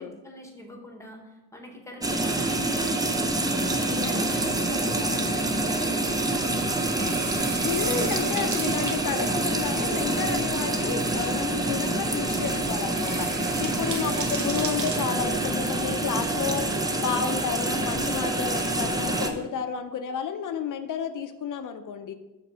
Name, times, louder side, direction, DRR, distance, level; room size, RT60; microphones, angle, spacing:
voice 1, 0.0-3.6 3.9-6.7 13.7-14.2, equal, 10° left, 2 dB, 1.0 m, -42 dB
sound 1, 2.0-19.3, right 2 dB, 10° right, 0.5 m, -26 dB
sound 2, 3.3-16.8, right 4 dB, 60° right, 0.9 m, -39 dB
voice 2, 3.9-4.3 6.8-7.0 7.6-16.7 17.0-22.1, left 7 dB, 65° left, 9 dB, 0.5 m, -31 dB
7.5 x 3.3 x 5.4 m, 1.1 s
wide cardioid pair, 160°, 33 cm